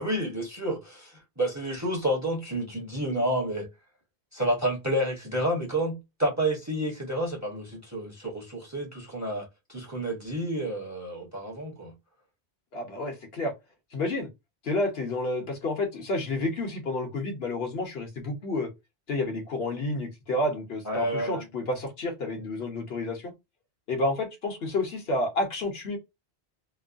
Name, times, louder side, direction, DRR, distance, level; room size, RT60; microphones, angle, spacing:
voice 1, 0.0-3.7 4.3-11.9 20.9-21.4, right 1 dB, 15° right, 0.9 m, -30 dB
voice 2, 12.7-13.5 13.9-14.3 14.6-18.7 19.1-23.3 23.9-26.0, left 2 dB, 65° left, 1.1 m, -30 dB
3.0 x 2.1 x 2.5 m
omnidirectional pair, 1.1 m